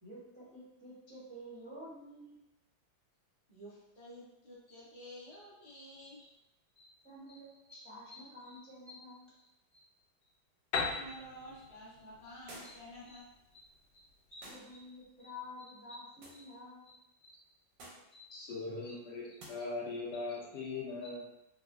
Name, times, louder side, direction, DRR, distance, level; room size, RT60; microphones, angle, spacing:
voice 1, 0.0-2.4 4.7-4.8 5.3-5.4 5.7-5.8 6.2-6.3 6.8-9.9 12.6-12.7 13.1-13.2 13.5-13.6 13.9-17.3 18.1-18.2 21.0-21.1, left 1 dB, 25° right, -10 dB, 0.6 m, -51 dB
voice 2, 3.5-6.2 10.8-13.3, equal, 30° left, -8 dB, 0.7 m, -51 dB
Piano, 10.7-14.4, left 4 dB, 90° left, 1.3 m, -40 dB
sound 1, 12.5-13.0 14.4-14.8 16.2-16.5 17.8-18.1 19.4-19.5, right 1 dB, 80° right, 1.5 m, -51 dB
voice 3, 18.3-21.4, left 3 dB, 70° left, -4 dB, 1.2 m, -40 dB
4.0 x 2.0 x 2.4 m, 0.86 s
omnidirectional pair, 2.1 m